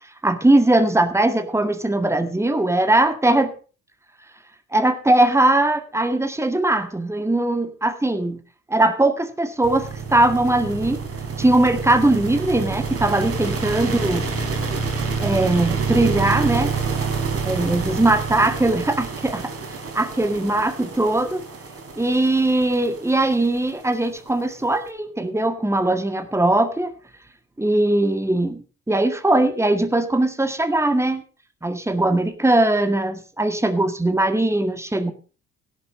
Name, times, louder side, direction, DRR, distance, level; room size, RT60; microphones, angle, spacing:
voice 1, 0.2-3.5 4.7-8.4 8.7-11.0 11.4-14.2 15.2-16.7 17.4-19.5 19.9-21.4 22.0-26.9 27.6-31.2 31.6-35.1, right 2 dB, 5° right, 9 dB, 1.9 m, -20 dB
sound 1, 9.6-24.8, right 5 dB, 40° right, 3.6 m, -28 dB
17.0 x 7.3 x 5.5 m, 0.36 s
hypercardioid pair, 50°, 37 cm